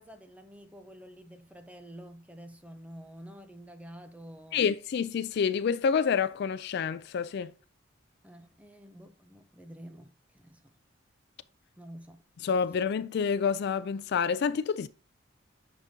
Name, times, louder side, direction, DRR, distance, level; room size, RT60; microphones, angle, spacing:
voice 1, 0.0-4.7 8.2-10.7 11.8-12.2, equal, 5° right, 0.6 m, -49 dB
voice 2, 4.5-7.5 12.4-14.9, left 6 dB, 55° left, 0.3 m, -28 dB
9.4 x 5.2 x 2.7 m
head